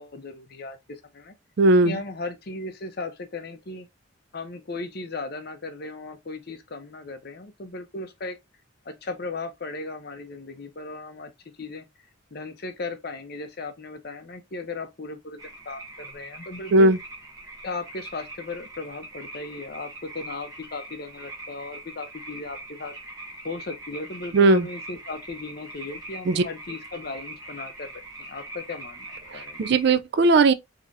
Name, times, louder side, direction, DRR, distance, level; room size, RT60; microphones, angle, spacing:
voice 1, 0.0-1.3 1.8-3.9 4.3-8.4 8.8-11.3 11.6-11.9 12.3-16.9 17.6-22.9 23.4-27.9 28.2-29.6, left 3 dB, 50° left, 0.7 m, -36 dB
voice 2, 1.6-2.0 16.7-17.0 24.3-24.6 26.3-26.4 29.6-30.5, right 2 dB, 55° right, 0.4 m, -17 dB
sound 1, 15.4-29.9, right 2 dB, 15° right, 0.9 m, -42 dB
3.8 x 2.9 x 2.5 m
head